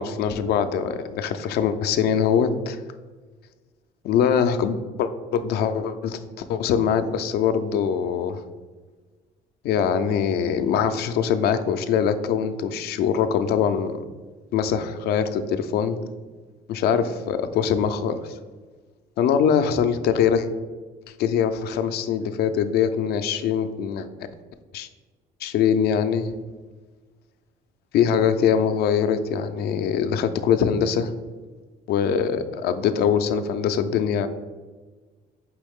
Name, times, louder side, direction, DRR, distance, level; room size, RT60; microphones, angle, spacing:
voice 1, 0.0-2.8 4.0-8.4 9.6-14.0 14.5-16.0 16.7-18.4 19.2-20.5 21.2-24.1 24.7-24.9 25.4-26.3 27.9-31.1 31.9-34.3, left 7 dB, 70° left, 10 dB, 0.4 m, -23 dB
4.7 x 3.1 x 3.5 m, 1.4 s
cardioid pair, 110°, 17 cm